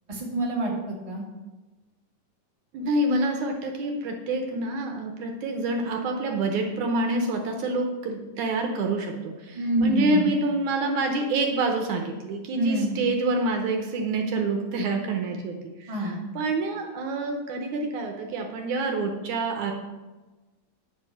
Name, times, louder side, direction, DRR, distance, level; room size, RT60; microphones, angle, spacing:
voice 1, 0.1-1.2 9.5-10.3 12.5-12.9 15.9-16.2, right 1 dB, 15° right, -4 dB, 1.4 m, -26 dB
voice 2, 2.7-19.7, right 2 dB, 70° right, 3 dB, 2.1 m, -27 dB
10.5 x 4.8 x 6.2 m, 1.2 s
omnidirectional pair, 3.8 m